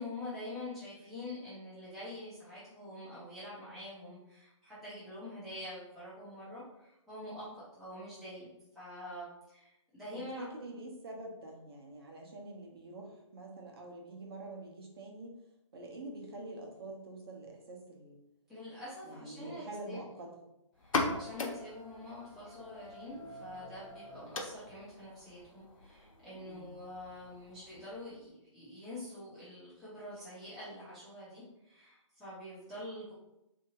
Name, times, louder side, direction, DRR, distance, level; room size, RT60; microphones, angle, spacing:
voice 1, 0.0-8.5 8.7-10.5 18.5-20.2 20.8-33.1, left 1 dB, ahead, -12 dB, 0.3 m, -46 dB
voice 2, 10.1-15.4 15.7-18.2 19.0-20.3 26.3-26.7, right 2 dB, 50° right, 0 dB, 0.9 m, -46 dB
sound 1, 20.8-28.2, left 3 dB, 85° left, 0.7 m, -41 dB
3.5 x 2.8 x 2.8 m, 0.89 s
hypercardioid pair, 160°, 17 cm